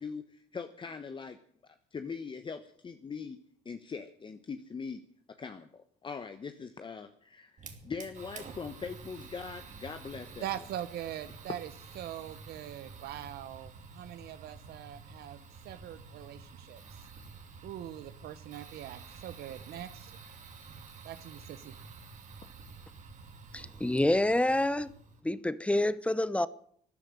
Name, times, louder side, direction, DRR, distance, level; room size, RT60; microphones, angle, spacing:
voice 1, 0.0-1.4 1.9-3.4 3.6-5.0 5.3-10.4, left 5 dB, 30° left, 1.1 m, -41 dB
Fire, 7.6-25.2, right 4 dB, 45° right, 2.9 m, -50 dB
voice 2, 10.4-11.7 11.9-17.1 17.6-20.2 21.0-21.8, right 11 dB, 70° right, 0.9 m, -42 dB
voice 3, 23.5-24.9 25.2-26.5, left 1 dB, 5° left, 0.9 m, -27 dB
13.5 x 10.5 x 9.5 m
cardioid pair, 110°, 17 cm